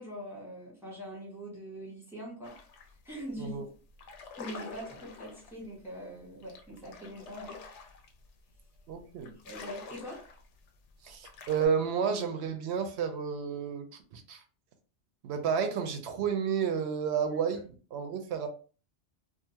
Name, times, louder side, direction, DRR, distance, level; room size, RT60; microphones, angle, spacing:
voice 1, 0.0-2.5 3.0-3.6 4.4-7.6 9.2-10.2, equal, ahead, 1.0 m, -43 dB
sound 1, 2.4-2.9 3.3-3.5 3.9-11.7, left 5 dB, 80° left, 0.9 m, -47 dB
voice 2, 8.9-9.3 11.0-14.4 15.2-18.5, right 7 dB, 70° right, 0.8 m, -31 dB
2.6 x 2.4 x 2.8 m
omnidirectional pair, 1.2 m